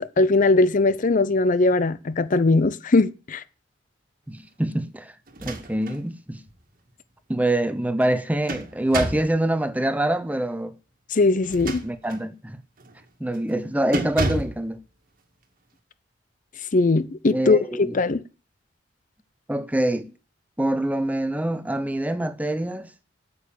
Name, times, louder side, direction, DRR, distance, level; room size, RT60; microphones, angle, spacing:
voice 1, 0.0-3.4 11.1-11.8 16.7-18.2, left 3 dB, 45° left, 0.6 m, -20 dB
voice 2, 4.3-5.1 5.4-6.4 7.3-10.7 11.8-12.6 13.2-14.8 17.3-18.0 19.5-20.1 20.6-22.9, right 1 dB, 10° right, 0.8 m, -25 dB
sound 1, 5.3-6.0 6.5-6.6 8.0-9.4 11.4-12.3 12.8-13.0 13.3-13.6 13.9-14.6, right 2 dB, 50° right, 1.7 m, -30 dB
8.8 x 7.2 x 8.6 m
head